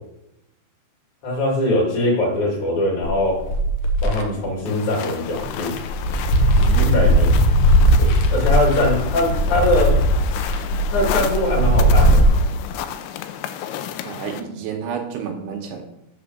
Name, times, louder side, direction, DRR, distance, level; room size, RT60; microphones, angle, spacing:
voice 1, 1.2-3.4 4.0-5.8 6.9-7.3 8.0-9.9 10.9-12.2, left 1 dB, 45° left, -3 dB, 3.4 m, -21 dB
sound 1, 3.0-4.2 4.9-5.0 5.4-12.2, equal, 70° left, 2.2 m, -17 dB
sound 2, 4.7-14.4, left 10 dB, 90° left, 2.9 m, -32 dB
voice 2, 6.6-7.3 14.0-15.8, right 6 dB, 80° right, 3 dB, 2.8 m, -29 dB
6.9 x 6.1 x 6.5 m, 0.85 s
omnidirectional pair, 5.0 m